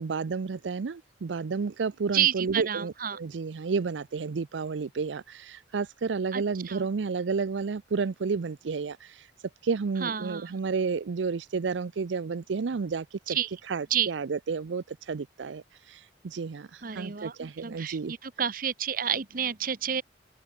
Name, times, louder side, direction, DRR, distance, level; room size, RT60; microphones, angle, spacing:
voice 1, 0.0-9.3 9.6-13.4 13.7-18.1, right 5 dB, 85° right, 0.5 m, -31 dB
voice 2, 2.1-3.2 6.3-6.9 10.0-10.6 13.3-13.5 13.9-14.1 16.8-20.0, right 9 dB, 50° right, 0.9 m, -30 dB
open air
head